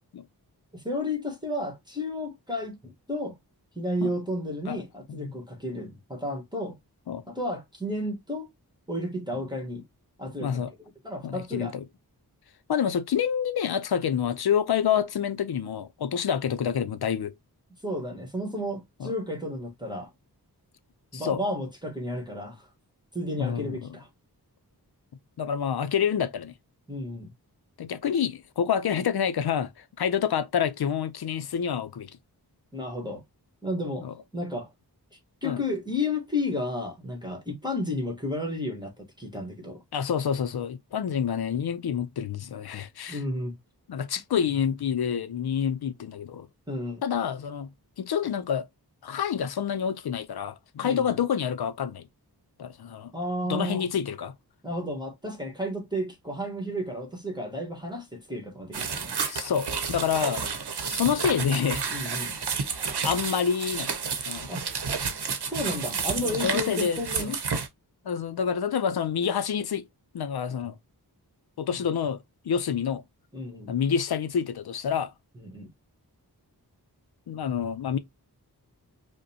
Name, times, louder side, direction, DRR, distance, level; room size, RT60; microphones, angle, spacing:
voice 1, 0.7-3.4 3.7-6.8 7.3-8.5 8.9-9.8 10.2-10.6 11.0-11.7 17.8-20.1 21.1-22.7 23.1-24.1 26.9-27.3 32.7-33.2 33.6-34.1 34.3-34.7 35.1-39.8 43.1-43.6 46.7-47.0 50.8-51.1 53.1-53.9 54.6-59.1 61.9-62.4 64.5-64.7 65.5-67.4 73.3-73.7 75.4-75.7, left 1 dB, 10° right, 1.2 m, -32 dB
voice 2, 10.4-10.7 11.2-11.8 12.7-17.3 19.0-19.1 21.1-21.4 23.4-24.0 25.4-26.5 27.8-32.1 34.0-34.1 35.4-35.6 39.9-43.2 43.9-46.5 47.0-47.7 48.0-48.7 49.0-52.0 52.6-53.1 53.5-54.3 59.3-60.5 60.9-61.8 63.0-64.0 64.3-64.5 66.2-67.3 68.0-69.8 70.1-70.7 71.6-73.0 73.7-75.1 77.3-78.0, left 8 dB, 75° left, 0.5 m, -28 dB
sound 1, 58.7-67.7, right 5 dB, 80° right, 0.8 m, -31 dB
5.0 x 2.1 x 2.7 m
wide cardioid pair, 80°, 39 cm